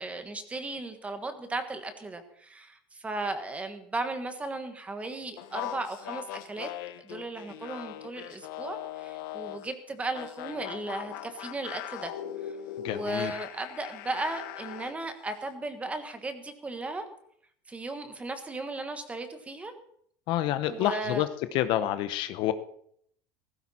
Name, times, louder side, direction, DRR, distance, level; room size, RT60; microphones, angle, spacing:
voice 1, 0.0-6.7 7.0-12.1 12.4-12.6 12.9-17.0 17.7-19.7 20.6-21.3, right 2 dB, 10° right, 8 dB, 1.5 m, -36 dB
sound 1, 5.4-9.7 10.1-15.0, left 12 dB, 75° left, 1.0 m, -40 dB
voice 2, 12.8-13.3 20.3-21.3 21.5-22.5, left 13 dB, 50° left, 12 dB, 0.9 m, -28 dB
17.0 x 15.5 x 4.3 m, 0.67 s
cardioid pair, 160°, 11 cm